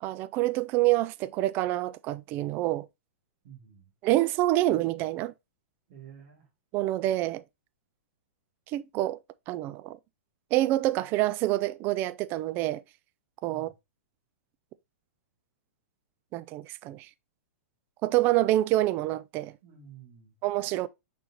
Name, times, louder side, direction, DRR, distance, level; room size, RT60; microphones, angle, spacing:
voice 1, 0.0-2.9 4.0-5.3 6.7-7.4 8.7-9.2 9.5-10.0 10.5-12.8 13.4-13.7 16.3-17.1 18.0-19.5 20.4-20.9, right 16 dB, 25° right, 0.3 m, -27 dB
voice 2, 3.4-3.9 5.9-6.5 13.5-13.7 19.6-20.4, right 9 dB, 50° right, 2.6 m, -50 dB
6.2 x 5.3 x 2.9 m
hypercardioid pair, 155°, 8 cm